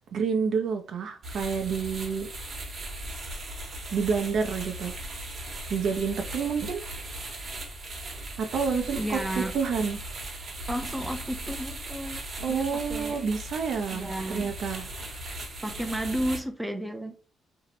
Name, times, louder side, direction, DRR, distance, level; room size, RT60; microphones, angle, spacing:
voice 1, 0.1-2.3 3.9-5.0 5.7-6.8 8.4-10.0 12.4-14.9, right 5 dB, 70° right, 0.5 m, -29 dB
sound 1, 1.2-16.4, right 1 dB, 50° right, 0.9 m, -38 dB
voice 2, 8.9-9.5 10.7-13.2 13.9-14.5 15.6-17.2, right 1 dB, 5° right, 0.4 m, -33 dB
2.6 x 2.0 x 2.8 m
cardioid pair, 90°, 0 cm